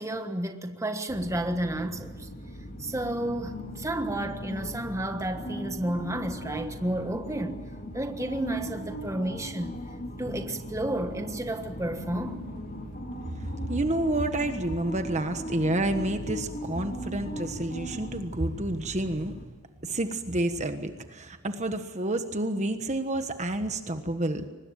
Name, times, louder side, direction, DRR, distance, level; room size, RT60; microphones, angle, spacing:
voice 1, 0.0-2.3 2.8-7.6 7.9-9.8 10.2-12.5, right 1 dB, 15° right, 1.5 m, -31 dB
sound 1, 1.1-19.4, equal, 40° left, 2.9 m, -38 dB
voice 2, 13.7-19.3 19.8-24.5, right 1 dB, 30° right, 1.4 m, -29 dB
23.5 x 20.5 x 9.0 m
head